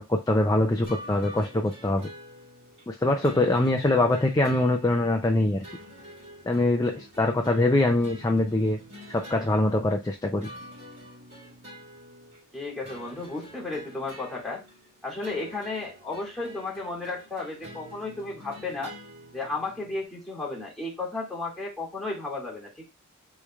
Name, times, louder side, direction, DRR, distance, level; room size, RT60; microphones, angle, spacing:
voice 1, 0.0-2.1 2.9-5.7 6.5-8.8 9.1-10.5, left 2 dB, 15° left, 3 dB, 0.5 m, -23 dB
sound 1, 0.8-20.0, equal, 35° right, 2.5 m, -47 dB
voice 2, 12.5-14.6 15.0-18.9 19.3-22.8, left 3 dB, ahead, -3 dB, 2.2 m, -33 dB
6.6 x 3.2 x 2.4 m, 0.24 s
head